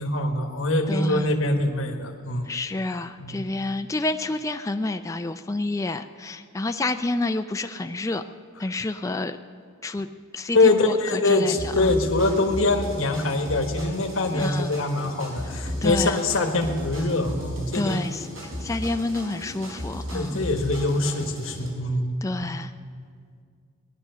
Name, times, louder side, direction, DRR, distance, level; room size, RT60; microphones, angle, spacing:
voice 1, 0.0-2.5 3.2-3.4 10.5-18.0 20.1-22.1 22.4-22.6, left 2 dB, 75° left, 3 dB, 1.3 m, -24 dB
voice 2, 0.9-1.3 2.4-8.2 8.6-9.4 9.8-10.1 10.3-11.9 14.3-14.8 15.8-16.2 17.7-18.3 18.6-20.4 22.2-22.7, left 2 dB, 15° left, 8 dB, 0.4 m, -28 dB
sound 1, 11.6-21.7, equal, 70° right, 5.4 m, -35 dB
18.5 x 11.0 x 6.7 m, 2.1 s
head